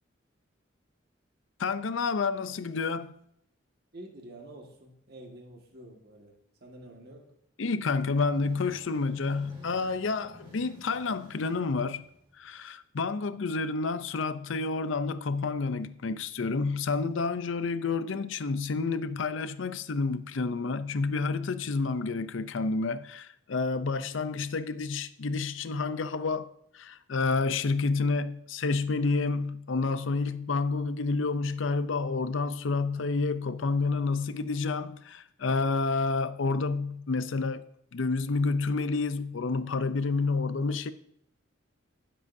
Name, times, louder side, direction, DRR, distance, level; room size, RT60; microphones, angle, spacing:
voice 1, 1.6-3.2 7.6-12.0 12.4-37.7 37.9-40.9, left 4 dB, 75° left, 0.6 m, -29 dB
voice 2, 3.9-7.3, right 1 dB, 50° right, 1.8 m, -48 dB
sound 1, 8.1-12.6, left 1 dB, 25° right, 3.3 m, -53 dB
20.0 x 7.7 x 2.7 m
head